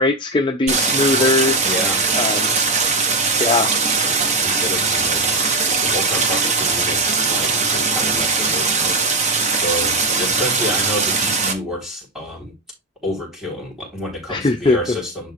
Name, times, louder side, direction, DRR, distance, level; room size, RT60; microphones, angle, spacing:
voice 1, 0.0-1.6 2.2-2.5 3.4-3.7 14.3-14.8, left 3 dB, 25° left, 0.5 m, -19 dB
Stream, 0.7-11.5, right 4 dB, 35° right, 1.3 m, -20 dB
voice 2, 1.6-2.1 4.0-5.4 5.8-9.0 9.5-12.5 13.0-15.3, left 1 dB, ahead, 4.0 m, -29 dB
10.5 x 3.8 x 3.5 m
head